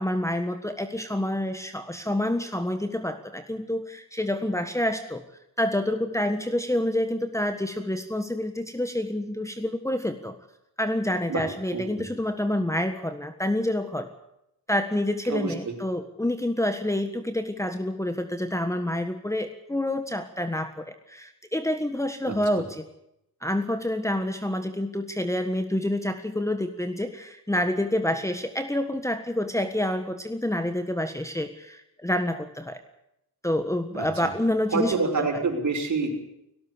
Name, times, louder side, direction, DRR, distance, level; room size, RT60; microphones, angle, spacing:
voice 1, 0.0-5.2 5.6-10.3 10.8-14.1 14.7-22.8 23.4-32.8 33.4-35.3, left 1 dB, 10° left, 8 dB, 1.5 m, -28 dB
voice 2, 11.7-12.1 15.3-15.7 22.3-22.6 33.9-34.3 34.7-36.2, right 4 dB, 45° right, 4 dB, 5.7 m, -28 dB
18.5 x 17.5 x 8.5 m, 0.80 s
cardioid pair, 95°, 39 cm